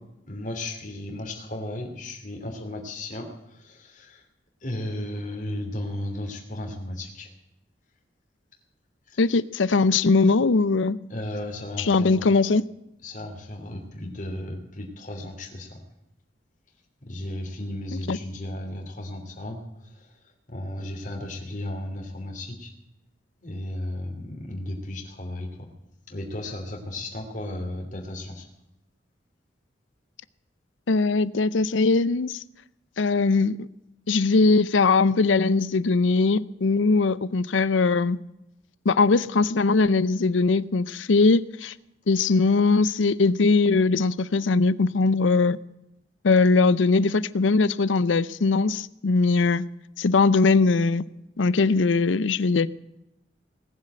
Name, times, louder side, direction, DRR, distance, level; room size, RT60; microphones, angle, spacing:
voice 1, 0.3-4.2 4.6-7.3 9.1-9.2 11.1-12.3 13.0-15.8 17.1-19.6 20.0-20.1 20.5-22.7 23.4-25.7 26.1-28.5, left 1 dB, 45° left, 2.9 m, -34 dB
voice 2, 9.2-11.0 11.8-12.7 17.9-18.2 30.9-32.4 33.0-33.7 34.1-38.2 38.9-41.7 42.1-45.6 46.2-49.6 50.0-51.0 51.4-52.7, left 3 dB, 85° left, 0.6 m, -21 dB
19.0 x 7.5 x 8.9 m
head